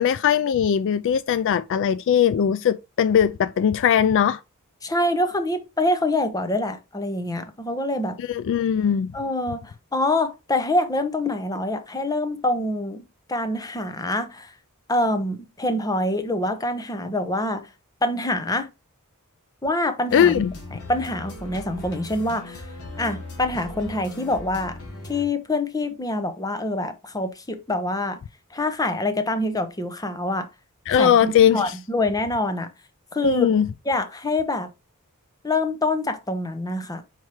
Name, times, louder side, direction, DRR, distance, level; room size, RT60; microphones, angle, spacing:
voice 1, 0.0-4.4 8.2-9.1 20.1-20.5 30.9-31.8 33.2-33.7, left 8 dB, 55° left, 0.3 m, -20 dB
voice 2, 4.8-8.2 9.1-13.0 13.3-14.5 14.9-17.7 18.0-18.7 19.6-20.4 20.9-22.6 23.0-24.8 25.1-28.2 28.5-30.5 30.9-32.7 33.1-33.5 33.9-34.7 35.4-37.0, left 2 dB, 15° left, 0.8 m, -25 dB
sound 1, 20.1-25.2, left 2 dB, 75° left, 2.0 m, -38 dB
4.8 x 4.5 x 4.4 m
head